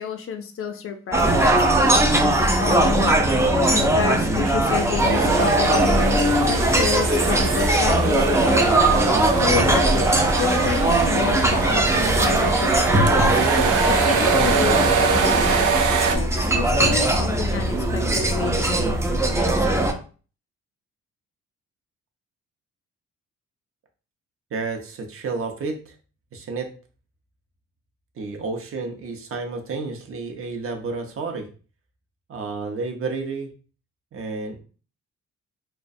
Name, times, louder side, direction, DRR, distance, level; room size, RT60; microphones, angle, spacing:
voice 1, 0.0-2.0 2.6-3.1 3.7-10.1 10.4-19.9, left 6 dB, 50° left, 6 dB, 0.5 m, -30 dB
sound 1, 1.1-19.9, right 1 dB, 10° right, 0.4 m, -20 dB
sound 2, 5.0-16.2, right 6 dB, 85° right, 0.5 m, -24 dB
voice 2, 24.5-25.9 26.3-26.7 28.2-31.5 32.3-33.5 34.1-34.6, right 4 dB, 45° right, 3 dB, 0.6 m, -31 dB
2.3 x 2.1 x 2.5 m, 0.37 s
cardioid pair, 90°, 30 cm